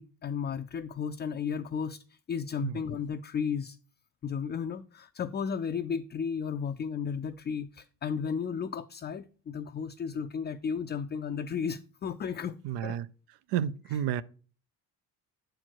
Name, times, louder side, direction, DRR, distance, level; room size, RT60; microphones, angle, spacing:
voice 1, 0.0-2.0 2.3-3.8 4.2-12.6 12.8-13.0, left 6 dB, 25° left, 0.3 m, -34 dB
voice 2, 12.6-13.1 13.5-14.2, right 10 dB, 85° right, 0.6 m, -30 dB
7.6 x 4.5 x 4.5 m
cardioid pair, 95°, 41 cm